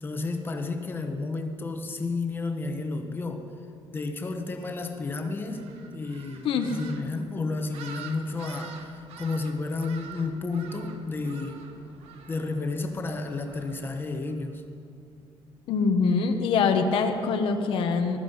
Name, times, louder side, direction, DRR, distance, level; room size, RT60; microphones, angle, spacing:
voice 1, 0.0-3.5 3.9-11.6 12.3-14.6, left 3 dB, 20° left, 5 dB, 1.1 m, -32 dB
sound 1, 5.4-14.5, right 6 dB, 80° right, 1.4 m, -47 dB
voice 2, 15.7-18.2, left 5 dB, 65° left, 5 dB, 1.1 m, -24 dB
20.0 x 13.0 x 5.6 m, 2.5 s
cardioid pair, 175°, 10 cm